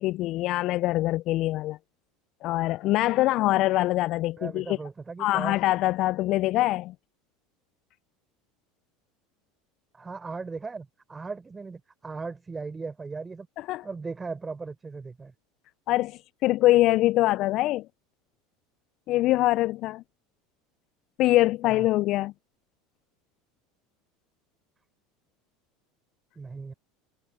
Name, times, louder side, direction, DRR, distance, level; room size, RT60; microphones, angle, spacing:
voice 1, 0.0-1.8 2.4-4.8 5.2-6.9 13.6-13.8 15.9-17.9 19.1-20.0 21.2-22.3, left 17 dB, 55° left, 0.3 m, -24 dB
voice 2, 4.4-5.5 9.9-13.5 13.8-15.3 21.6-21.9 26.3-26.7, right 4 dB, 20° right, 4.8 m, -37 dB
hypercardioid pair, 80°, 0 cm